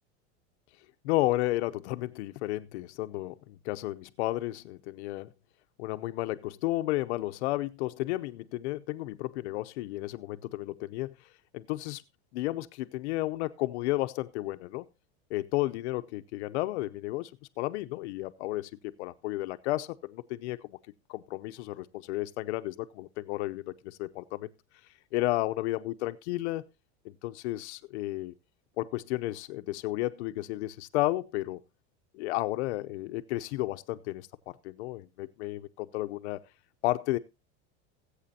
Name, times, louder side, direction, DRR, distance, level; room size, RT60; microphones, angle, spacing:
voice 1, 1.0-5.3 5.8-11.1 11.5-12.0 12.3-14.9 15.3-17.3 17.6-20.8 21.1-24.5 25.1-26.6 27.0-28.3 28.8-31.6 32.1-36.4 36.8-37.2, left 17 dB, 80° left, 0.7 m, -32 dB
19.5 x 8.4 x 2.8 m
supercardioid pair, 150°, 33 cm